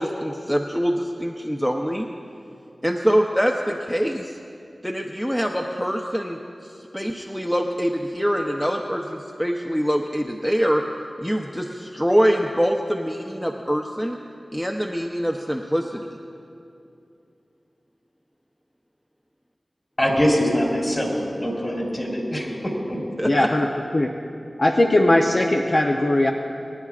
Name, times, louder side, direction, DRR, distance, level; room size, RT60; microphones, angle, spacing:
voice 1, 0.0-2.1 2.8-4.4 4.8-6.4 6.9-10.8 11.2-14.2 14.5-16.1 23.2-23.5, equal, 5° left, 2 dB, 0.7 m, -24 dB
voice 2, 20.0-23.0, equal, 30° left, -2 dB, 3.5 m, -23 dB
voice 3, 23.2-23.7 23.9-24.1 24.6-26.3, left 1 dB, 50° left, 1 dB, 0.7 m, -19 dB
25.0 x 10.5 x 2.5 m, 2.6 s
wide cardioid pair, 45°, 0 cm